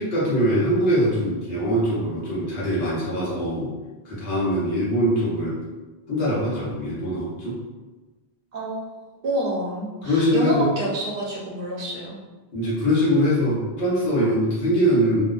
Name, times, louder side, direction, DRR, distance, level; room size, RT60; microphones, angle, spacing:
voice 1, 0.0-3.7 4.0-5.6 6.1-7.6 10.0-10.7 12.5-15.2, equal, 75° left, -7 dB, 1.1 m, -22 dB
voice 2, 8.5-8.8 9.2-12.2, right 1 dB, 65° right, -3 dB, 0.7 m, -27 dB
2.7 x 2.1 x 2.3 m, 1.2 s
omnidirectional pair, 1.0 m